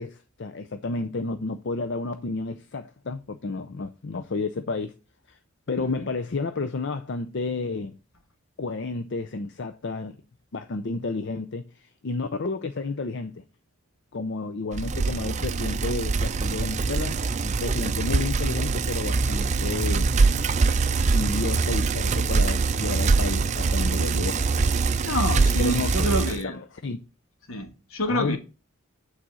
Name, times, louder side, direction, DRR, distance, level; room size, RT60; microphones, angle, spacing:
voice 1, 0.0-4.9 5.3-5.4 5.7-8.0 8.6-10.2 10.5-13.4 14.1-20.1 21.1-24.4 25.6-26.1 26.8-27.0 28.1-28.4, left 3 dB, 50° left, 0.5 m, -31 dB
voice 2, 5.8-6.1 25.0-26.6 27.5-28.4, equal, 70° left, 1.5 m, -28 dB
Bicycle, 14.7-26.4, right 4 dB, 30° right, 0.4 m, -23 dB
8.7 x 4.1 x 6.2 m
head